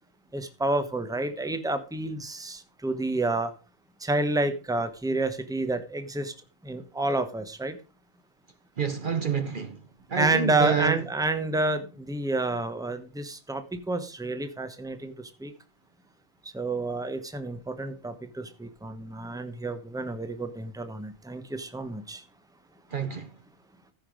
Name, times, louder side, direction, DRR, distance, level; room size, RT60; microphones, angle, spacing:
voice 1, 0.3-3.5 4.0-6.3 6.6-7.8 10.2-15.5 16.4-22.2, right 2 dB, 5° right, 1.0 m, -29 dB
voice 2, 8.8-9.8 10.1-11.0 22.9-23.3, right 6 dB, 50° right, 0.9 m, -28 dB
15.0 x 5.7 x 5.1 m
omnidirectional pair, 1.2 m